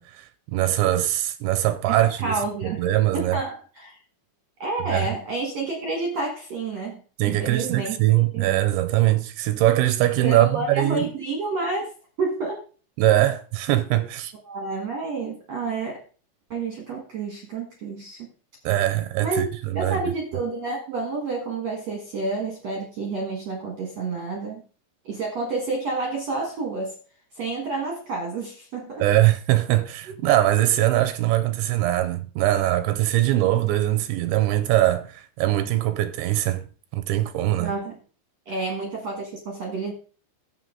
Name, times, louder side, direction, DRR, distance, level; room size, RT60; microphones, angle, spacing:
voice 1, 0.0-3.4 4.9-5.1 7.2-11.1 13.0-14.3 18.7-20.0 29.0-36.6 36.9-37.8, right 14 dB, 85° right, 2.8 m, -22 dB
voice 2, 1.9-2.8 3.1-3.9 4.6-7.0 7.2-8.0 8.3-8.5 10.2-11.9 12.2-12.6 14.5-16.0 16.5-18.2 19.2-19.5 19.7-24.6 25.1-26.9 27.4-29.0 37.6-38.0 38.5-39.9, right 3 dB, 65° right, 1.7 m, -29 dB
11.5 x 7.7 x 3.7 m
omnidirectional pair, 5.3 m